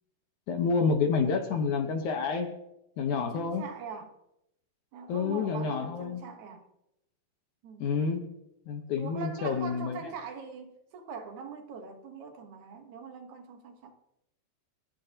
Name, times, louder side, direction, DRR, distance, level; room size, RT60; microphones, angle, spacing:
voice 1, 0.5-2.5 3.0-3.6 5.1-6.2 7.8-8.2 8.7-10.1, left 5 dB, 65° left, 2.1 m, -28 dB
voice 2, 3.1-4.1 4.9-6.6 7.6-8.0 9.0-13.9, right 6 dB, 60° right, 2.2 m, -43 dB
29.5 x 10.5 x 2.9 m
omnidirectional pair, 4.7 m